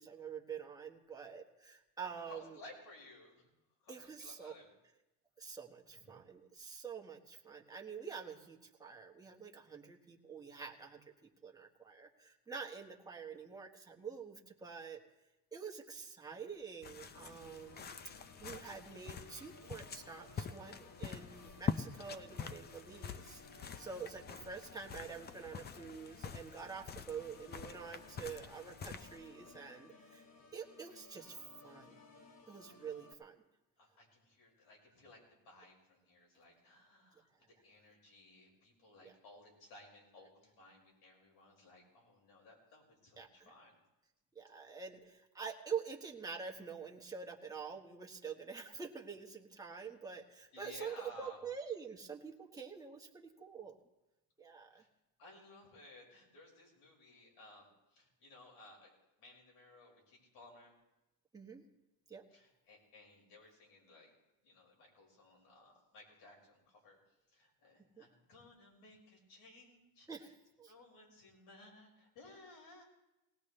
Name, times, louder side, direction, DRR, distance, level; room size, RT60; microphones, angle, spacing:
voice 1, 0.0-2.6 3.9-4.5 5.4-11.0 11.4-15.0 15.5-17.9 18.4-30.2 30.5-31.4 31.6-32.0 32.5-33.3 39.0-39.1 43.2-43.5 44.3-53.8 54.4-54.8 61.3-61.6 62.1-62.2 68.0-68.1 70.1-70.7, right 6 dB, 10° right, 0 dB, 1.4 m, -47 dB
voice 2, 2.2-3.5 3.8-4.7 5.9-6.2 30.3-30.5 33.8-35.2 35.4-43.8 50.5-51.4 54.7-54.9 55.2-58.9 59.2-60.7 62.3-64.1 64.4-67.0 67.3-70.3 70.7-72.8, left 2 dB, 75° left, -1 dB, 5.7 m, -58 dB
sound 1, 16.8-29.6, left 7 dB, 25° left, 0.5 m, -46 dB
Organ, 17.1-33.1, left 3 dB, 40° left, 1.5 m, -60 dB
19.0 x 18.5 x 3.3 m, 0.97 s
cardioid pair, 150°, 39 cm